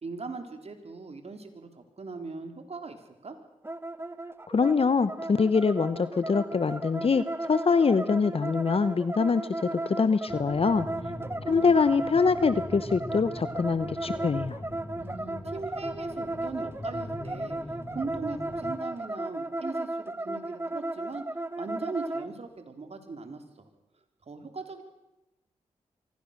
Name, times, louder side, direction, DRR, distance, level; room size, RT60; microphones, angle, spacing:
voice 1, 0.0-3.4 10.7-11.8 15.0-21.2 21.6-23.7 24.2-24.8, right 3 dB, 55° right, 6 dB, 3.7 m, -40 dB
sound 1, 3.6-22.3, right 2 dB, 20° right, 1.4 m, -35 dB
voice 2, 4.5-10.9 11.5-14.6, left 5 dB, 50° left, 14 dB, 1.0 m, -24 dB
sound 2, 10.3-18.7, left 1 dB, 20° left, 4.6 m, -42 dB
24.5 x 17.0 x 6.7 m, 0.93 s
supercardioid pair, 45°, 13 cm